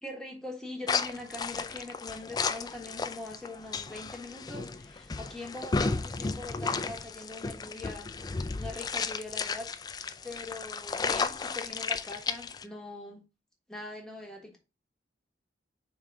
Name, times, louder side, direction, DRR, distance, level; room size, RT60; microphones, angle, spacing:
voice 1, 0.0-8.1 8.5-9.7 10.2-13.2 13.7-14.6, left 2 dB, 5° left, 1.5 m, -42 dB
sound 1, 0.9-12.6, left 4 dB, 25° left, 0.3 m, -34 dB
5.2 x 3.9 x 4.6 m
head